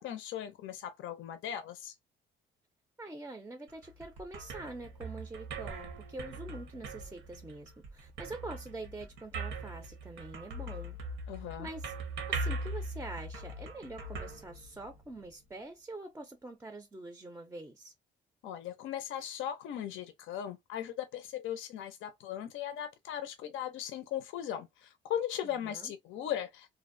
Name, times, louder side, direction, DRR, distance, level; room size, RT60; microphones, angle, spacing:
voice 1, 0.0-1.9 11.3-11.7 18.4-26.7, left 10 dB, 80° left, 0.5 m, -38 dB
voice 2, 3.0-11.0 11.6-11.9 12.3-17.9 25.4-25.9, right 2 dB, 10° right, 0.4 m, -45 dB
sound 1, 3.7-15.2, right 2 dB, 85° right, 0.8 m, -41 dB
2.5 x 2.0 x 2.4 m
cardioid pair, 90°, 20 cm